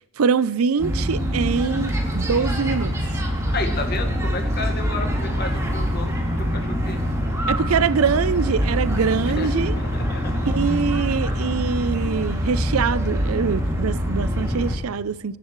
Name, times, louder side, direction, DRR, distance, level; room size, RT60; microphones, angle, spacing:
voice 1, 0.2-2.9 7.5-9.8 10.4-15.4, right 6 dB, 90° right, 0.5 m, -23 dB
sound 1, 0.8-14.8, equal, 15° right, 2.4 m, -24 dB
voice 2, 3.5-7.0 9.3-10.5, left 3 dB, 45° left, 1.6 m, -32 dB
29.0 x 11.0 x 3.2 m
head